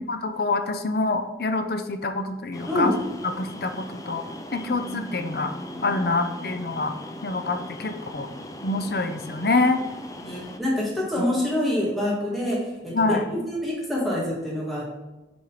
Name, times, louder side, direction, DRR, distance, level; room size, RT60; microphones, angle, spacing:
voice 1, 0.1-2.9 3.4-4.2 4.5-5.5 5.8-6.9 7.2-8.3 8.6-9.8 12.9-13.2, left 3 dB, 60° left, 7 dB, 0.6 m, -26 dB
sound 1, 2.5-10.6, left 1 dB, 20° left, 0.5 m, -38 dB
voice 2, 10.1-14.9, left 1 dB, ahead, -6 dB, 2.1 m, -26 dB
6.9 x 4.4 x 5.0 m, 1.1 s
head